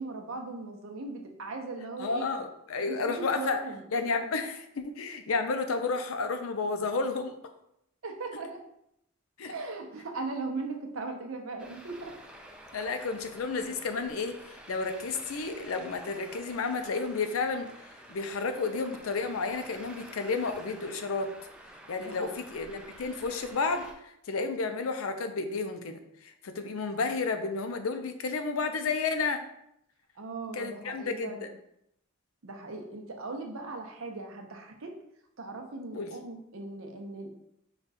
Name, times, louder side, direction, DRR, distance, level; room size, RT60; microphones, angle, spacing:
voice 1, 0.0-2.3 2.9-3.9 8.0-8.6 9.4-12.1 22.0-22.4 30.2-31.5 32.4-34.9 35.4-37.3, right 3 dB, 70° right, 3 dB, 0.7 m, -38 dB
voice 2, 2.0-3.6 3.9-7.3 9.4-9.5 12.7-17.7 18.1-21.3 21.9-29.4 30.5-31.5 35.9-36.1, left 4 dB, 80° left, 7 dB, 0.5 m, -31 dB
Traffic noise roadway noise, 11.6-23.9, right 1 dB, 5° right, 0.4 m, -49 dB
5.1 x 2.3 x 4.1 m, 0.77 s
head